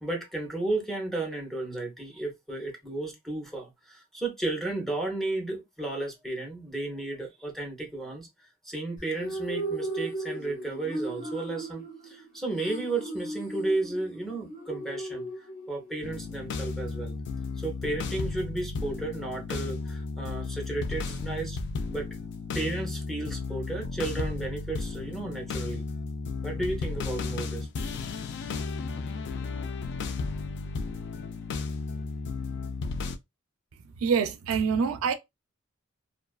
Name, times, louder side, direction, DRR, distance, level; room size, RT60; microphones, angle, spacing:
voice 1, 0.0-8.3 8.6-15.3 15.7-17.1 17.6-21.6 21.9-22.1 22.5-25.8 26.4-27.7, right 2 dB, ahead, 0.7 m, -33 dB
sound 1, 9.0-16.0, right 2 dB, 40° left, 0.7 m, -36 dB
sound 2, 16.0-33.2, left 4 dB, 55° left, 0.3 m, -34 dB
voice 2, 34.0-35.1, right 6 dB, 75° right, 0.4 m, -25 dB
2.4 x 2.3 x 2.3 m
head